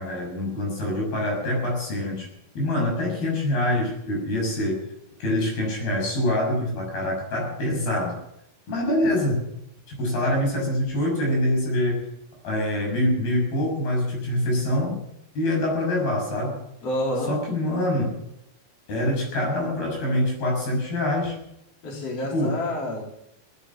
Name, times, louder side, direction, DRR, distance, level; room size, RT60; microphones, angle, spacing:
voice 1, 0.0-2.3 2.5-4.9 5.2-8.2 8.7-9.4 9.9-12.1 12.4-15.0 15.3-16.7 17.3-18.2 18.9-21.4 22.3-22.6, left 1 dB, 75° left, 0 dB, 8.5 m, -25 dB
voice 2, 16.8-17.3 21.8-23.0, left 1 dB, 40° left, -2 dB, 4.7 m, -28 dB
18.5 x 10.5 x 7.4 m, 0.80 s
omnidirectional pair, 4.4 m